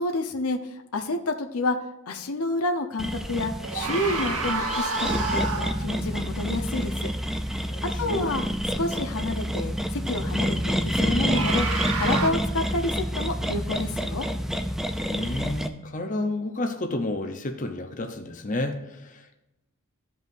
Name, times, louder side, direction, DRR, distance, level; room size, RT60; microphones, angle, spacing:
voice 1, 0.0-1.8 2.1-7.1 8.0-8.4 8.8-14.3, left 2 dB, 80° left, 5 dB, 0.8 m, -29 dB
sound 1, 3.0-15.7, equal, ahead, 0.4 m, -28 dB
sound 2, 3.6-5.9 11.0-12.3, right 3 dB, 80° right, 1.2 m, -29 dB
voice 2, 7.7-8.3 15.1-19.4, left 2 dB, 35° left, 4 dB, 0.7 m, -31 dB
14.5 x 5.4 x 2.6 m, 0.96 s
head